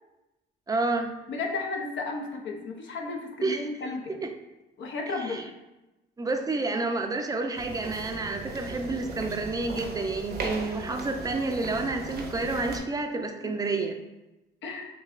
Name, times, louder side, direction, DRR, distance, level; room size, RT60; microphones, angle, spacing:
voice 1, 0.7-1.1 3.4-3.7 4.1-4.3 5.2-5.4 6.2-14.0, right 3 dB, 20° right, 4 dB, 0.5 m, -29 dB
voice 2, 1.3-4.1 4.8-5.5 13.4-13.5 14.6-14.9, left 3 dB, 70° left, 1 dB, 0.8 m, -33 dB
sound 1, 7.6-12.8, right 3 dB, 55° right, 0.7 m, -37 dB
6.3 x 2.2 x 2.5 m, 1.0 s
cardioid pair, 90°, 20 cm